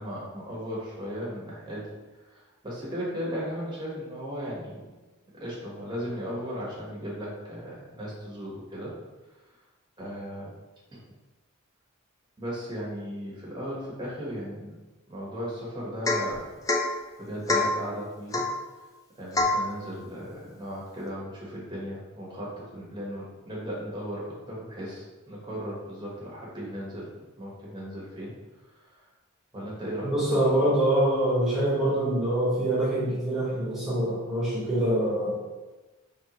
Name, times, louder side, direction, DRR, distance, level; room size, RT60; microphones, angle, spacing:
voice 1, 0.0-1.8 2.3-4.8 5.3-8.9 10.0-10.5 10.9-11.0 12.4-14.8 15.1-16.5 16.8-18.4 19.2-28.3 28.7-29.0 29.5-30.1, equal, 20° right, -6 dB, 1.3 m, -36 dB
Domestic sounds home sounds / Chink clink / Drip, 16.1-16.4 16.7-16.9 17.5-17.8 18.3-18.6 19.3-19.7, left 2 dB, 15° left, 0.4 m, -25 dB
voice 2, 30.0-35.4, right 1 dB, ahead, -10 dB, 1.5 m, -25 dB
5.3 x 3.3 x 3.0 m, 1.2 s
head